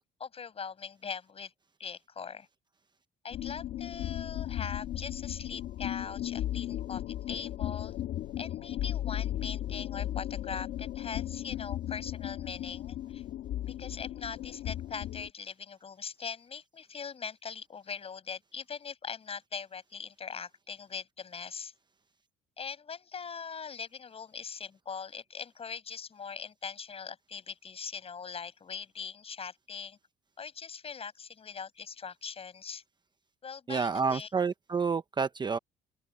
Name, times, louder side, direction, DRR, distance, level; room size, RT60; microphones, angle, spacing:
voice 1, 0.2-1.5 1.8-2.5 3.2-7.9 8.4-13.2 13.7-21.7 22.6-30.0 30.4-32.8 33.4-34.3, left 6 dB, 35° left, 6.3 m, -41 dB
sound 1, 3.3-15.3, left 12 dB, 70° left, 2.4 m, -36 dB
voice 2, 33.7-35.6, right 5 dB, 25° right, 0.9 m, -29 dB
open air
cardioid pair, 110°, 17 cm